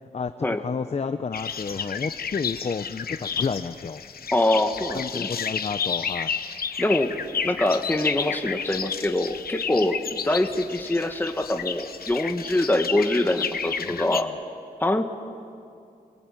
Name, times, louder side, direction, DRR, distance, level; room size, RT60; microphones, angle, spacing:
voice 1, 0.1-4.0 4.9-6.3 13.8-14.2, left 5 dB, 45° left, 10 dB, 0.7 m, -31 dB
sound 1, 1.3-14.2, left 6 dB, 85° left, 1.0 m, -32 dB
voice 2, 4.3-5.3 6.8-7.1 7.4-14.3 14.8-15.0, left 1 dB, 15° left, 5 dB, 1.6 m, -24 dB
23.5 x 23.0 x 9.2 m, 2.4 s
wide cardioid pair, 85°, 15 cm